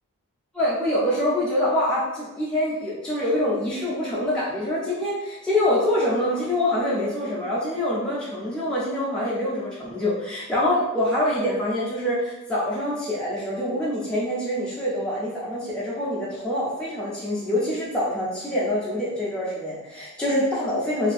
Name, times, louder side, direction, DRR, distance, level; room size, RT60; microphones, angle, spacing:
voice 1, 0.5-21.1, left 1 dB, 5° left, -8 dB, 0.3 m, -25 dB
2.4 x 2.3 x 2.5 m, 1.0 s
head